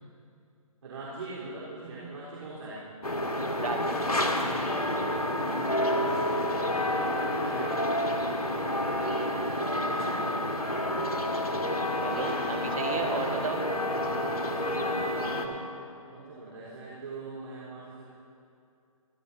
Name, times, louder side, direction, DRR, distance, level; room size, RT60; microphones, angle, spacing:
voice 1, 0.8-2.9 5.3-10.4 11.1-11.8 13.9-15.6 16.1-18.0, right 2 dB, 55° right, -8 dB, 4.2 m, -43 dB
sound 1, 3.0-15.5, left 1 dB, 85° left, 1.8 m, -29 dB
voice 2, 3.6-4.0 12.0-13.6, right 4 dB, 70° right, 2 dB, 2.0 m, -33 dB
28.5 x 13.5 x 2.9 m, 2.6 s
figure-of-eight pair, 135°, 19 cm